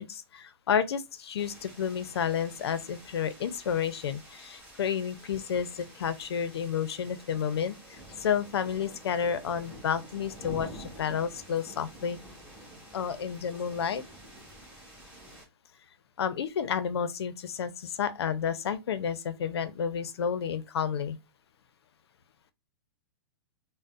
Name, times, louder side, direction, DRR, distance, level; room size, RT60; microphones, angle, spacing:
voice 1, 0.0-12.2 12.9-14.0 16.2-21.2, left 7 dB, 90° left, 0.5 m, -31 dB
sound 1, 1.4-15.5, right 1 dB, 10° right, 1.1 m, -48 dB
3.9 x 2.1 x 2.4 m
hypercardioid pair, 150°, 13 cm